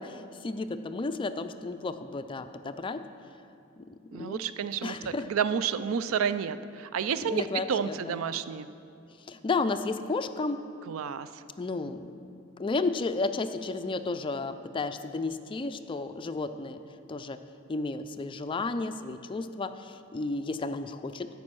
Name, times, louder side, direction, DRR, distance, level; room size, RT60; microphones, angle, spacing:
voice 1, 0.0-3.0 3.8-4.4 4.8-5.3 7.2-8.2 9.3-10.6 11.6-12.1 12.6-16.8 17.1-17.4 17.7-21.3, left 3 dB, 25° left, 10 dB, 0.3 m, -32 dB
voice 2, 4.1-8.7 10.9-11.3, right 7 dB, 85° right, 13 dB, 0.4 m, -30 dB
10.5 x 5.4 x 7.5 m, 2.5 s
head